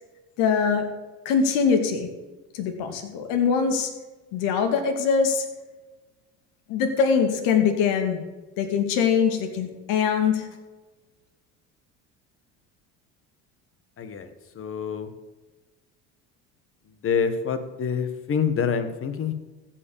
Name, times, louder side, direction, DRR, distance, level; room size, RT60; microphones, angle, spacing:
voice 1, 0.4-0.9 1.3-2.1 2.5-3.9 4.3-5.5 6.7-8.2 8.6-10.5, left 6 dB, 80° left, 5 dB, 2.2 m, -22 dB
voice 2, 14.0-15.1 17.0-19.3, left 6 dB, 40° left, 10 dB, 1.5 m, -27 dB
15.5 x 5.9 x 7.1 m, 1.2 s
supercardioid pair, 105°, 33 cm